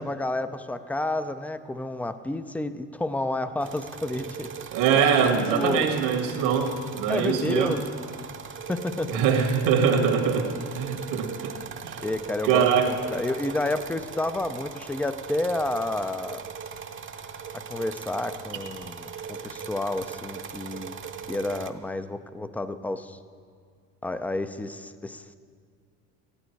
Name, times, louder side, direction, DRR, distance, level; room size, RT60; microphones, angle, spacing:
voice 1, 0.0-4.5 5.0-5.1 5.5-5.9 6.3-6.7 7.1-7.8 8.7-9.2 12.0-16.5 17.5-20.9 21.3-23.2 24.0-25.3, left 2 dB, 5° left, 11 dB, 0.4 m, -30 dB
sound 1, 3.6-21.7, right 6 dB, 30° right, 0.8 m, -39 dB
voice 2, 4.7-7.7 9.1-11.6 11.8-12.0 12.4-12.9, right 7 dB, 75° right, 4 dB, 1.9 m, -23 dB
15.0 x 11.5 x 4.6 m, 2.1 s
supercardioid pair, 100°, 39 cm